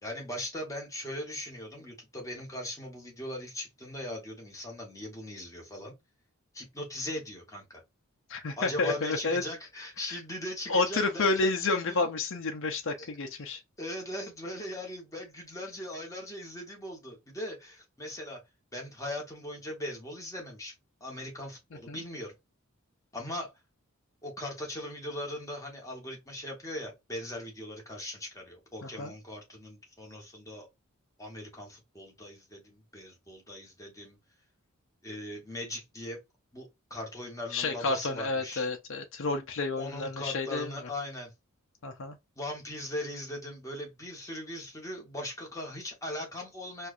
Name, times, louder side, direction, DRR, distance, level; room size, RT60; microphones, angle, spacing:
voice 1, 0.0-5.9 6.5-7.8 8.6-12.1 13.0-13.1 13.4-13.5 13.8-18.4 18.7-20.7 21.0-22.3 23.1-23.5 24.2-30.7 31.2-34.2 35.0-36.2 36.5-38.7 39.8-41.3 42.4-46.9, left 1 dB, 15° left, 1.2 m, -39 dB
voice 2, 8.3-9.4 10.7-13.6 21.9-22.0 28.8-29.1 37.5-40.7 41.8-42.2, left 3 dB, 65° left, 0.6 m, -30 dB
4.5 x 2.3 x 2.6 m
head